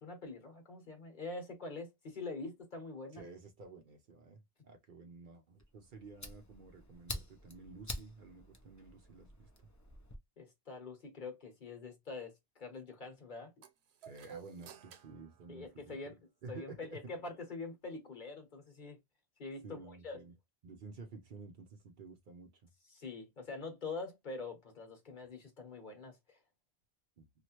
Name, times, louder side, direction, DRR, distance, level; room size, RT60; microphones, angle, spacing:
voice 1, 0.0-3.2 10.4-13.5 15.5-16.1 16.5-19.0 19.4-20.2 22.9-26.4, left 3 dB, 50° left, 1.1 m, -45 dB
voice 2, 3.1-9.5 14.0-16.1 16.4-17.1 19.6-20.3 20.6-22.7 27.2-27.3, right 4 dB, 60° right, 0.7 m, -52 dB
Fire, 5.6-10.2, left 1 dB, 25° left, 0.4 m, -47 dB
sound 1, 13.6-16.3, right 8 dB, 85° right, 0.9 m, -55 dB
3.0 x 2.4 x 2.9 m
omnidirectional pair, 1.1 m